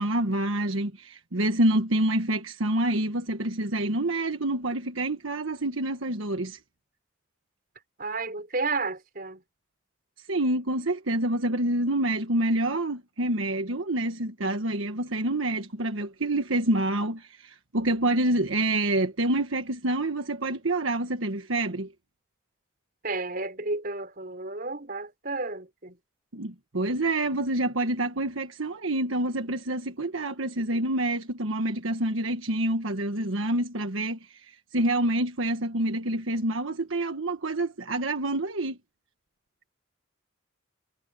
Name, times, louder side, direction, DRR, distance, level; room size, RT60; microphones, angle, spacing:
voice 1, 0.0-6.6 10.3-21.9 26.3-38.8, right 1 dB, 85° right, 1.4 m, -27 dB
voice 2, 8.0-9.4 23.0-26.0, right 3 dB, 45° right, 5.3 m, -32 dB
head